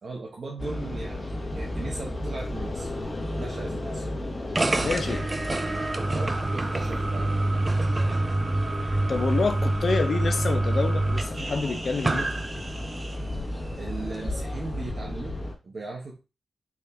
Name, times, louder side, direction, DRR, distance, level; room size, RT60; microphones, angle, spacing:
voice 1, 0.0-2.9 3.4-4.1 6.1-8.2 13.7-16.2, right 3 dB, 55° right, 0.8 m, -38 dB
sound 1, 0.6-15.5, left 1 dB, 30° left, 1.1 m, -34 dB
sound 2, 4.5-13.3, right 2 dB, 25° right, 0.4 m, -27 dB
voice 2, 4.8-5.4 8.8-12.3, left 4 dB, 55° left, 0.6 m, -28 dB
4.8 x 2.6 x 3.4 m
wide cardioid pair, 115°, 0 cm